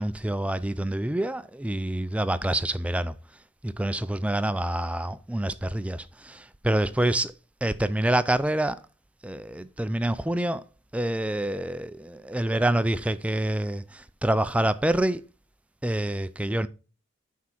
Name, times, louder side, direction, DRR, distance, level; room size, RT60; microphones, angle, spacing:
voice 1, 0.0-3.1 3.6-7.3 7.6-8.8 9.2-10.6 10.9-15.2 15.8-16.7, right 1 dB, 5° right, 0.3 m, -27 dB
6.1 x 4.6 x 5.7 m
head